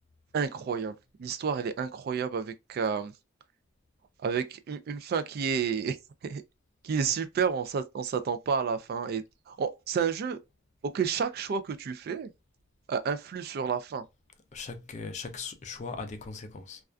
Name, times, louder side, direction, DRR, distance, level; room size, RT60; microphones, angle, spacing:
voice 1, 0.3-3.1 4.2-6.0 6.2-6.4 6.8-10.4 10.8-12.3 12.9-14.0, right 6 dB, 50° right, 0.3 m, -30 dB
voice 2, 14.5-16.8, left 4 dB, 35° left, 0.4 m, -39 dB
2.3 x 2.3 x 2.3 m
head